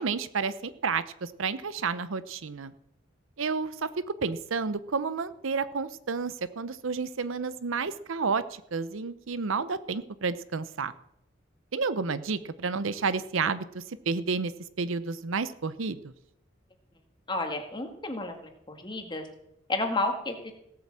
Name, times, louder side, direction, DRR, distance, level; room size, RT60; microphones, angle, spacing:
voice 1, 0.0-2.7 3.4-3.9 4.2-10.9 11.7-14.5 14.8-16.1, right 4 dB, 70° right, 15 dB, 0.7 m, -31 dB
voice 2, 17.3-19.3 19.7-20.5, left 2 dB, 20° left, 4 dB, 1.9 m, -31 dB
17.0 x 8.6 x 7.4 m, 0.81 s
head